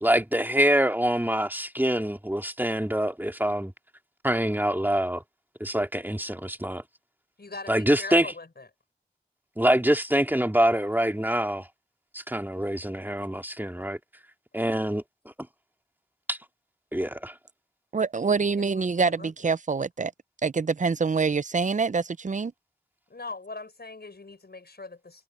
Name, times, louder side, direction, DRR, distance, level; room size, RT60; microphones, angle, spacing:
voice 1, 0.0-3.7 4.2-5.2 5.6-6.8 7.7-8.3 9.6-11.7 12.1-14.0 14.5-15.0 16.3-16.4 16.9-17.3, right 1 dB, 10° right, 2.5 m, -25 dB
voice 2, 7.4-8.7 18.5-19.3 23.1-25.2, left 3 dB, 80° left, 6.6 m, -41 dB
voice 3, 17.9-20.1 20.4-22.5, right 4 dB, 50° right, 0.5 m, -25 dB
wide cardioid pair, 45°, 16 cm